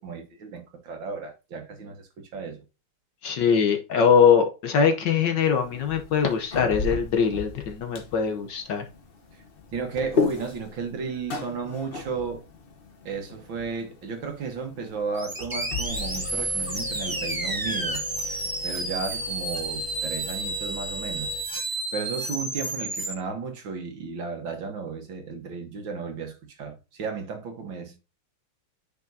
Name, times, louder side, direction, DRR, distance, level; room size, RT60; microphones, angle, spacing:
voice 1, 0.0-2.6 9.7-12.4 13.1-21.4 21.9-28.0, right 5 dB, 65° right, 2.0 m, -34 dB
voice 2, 3.2-8.8, left 6 dB, 60° left, 1.4 m, -22 dB
sound 1, 5.4-21.4, left 5 dB, 40° left, 0.8 m, -36 dB
sound 2, 15.2-23.1, right 2 dB, 20° right, 0.6 m, -31 dB
9.4 x 5.3 x 2.7 m
omnidirectional pair, 2.4 m